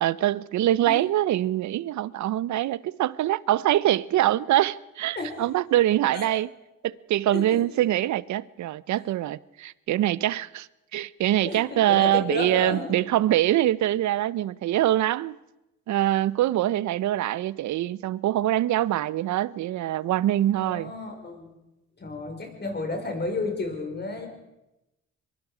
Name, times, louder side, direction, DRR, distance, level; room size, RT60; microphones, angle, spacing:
voice 1, 0.0-6.5 6.8-10.7 10.9-15.4 15.9-20.9, right 13 dB, 70° right, 0.7 m, -24 dB
voice 2, 7.3-7.6 11.4-13.0 20.6-21.5 22.0-24.3, left 3 dB, 35° left, 5.2 m, -32 dB
23.5 x 22.5 x 5.0 m
cardioid pair, 90°, 30 cm